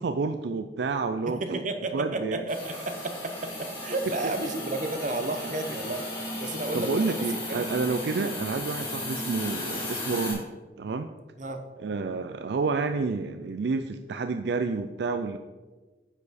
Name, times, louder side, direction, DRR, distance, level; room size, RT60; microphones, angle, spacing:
voice 1, 0.0-1.6 1.9-2.4 6.7-10.4 10.8-11.1 11.8-15.4, right 4 dB, 70° right, 8 dB, 0.4 m, -29 dB
voice 2, 1.3-6.1 6.4-7.7 8.2-8.3 11.4-11.6, right 2 dB, 45° right, 6 dB, 0.9 m, -32 dB
Hiss, 2.5-10.3, left 1 dB, 30° left, 3.2 m, -35 dB
9.9 x 6.8 x 4.2 m, 1.3 s
head